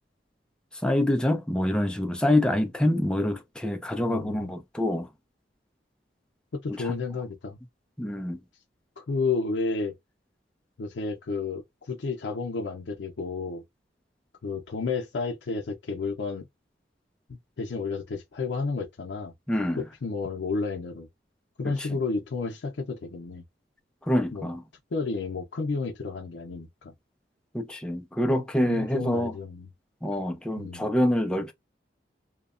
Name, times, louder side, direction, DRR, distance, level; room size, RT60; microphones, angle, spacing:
voice 1, 0.8-5.1 8.0-8.4 19.5-19.8 24.1-24.6 27.5-29.3 30.0-31.5, left 1 dB, 5° left, 0.4 m, -26 dB
voice 2, 4.1-4.5 6.5-7.6 9.0-9.9 10.8-13.6 14.4-16.5 17.3-19.3 19.8-21.1 21.6-23.4 24.3-24.5 24.9-26.9 28.3-29.7 30.6-30.9, left 4 dB, 85° left, 0.5 m, -31 dB
2.8 x 2.1 x 2.4 m
head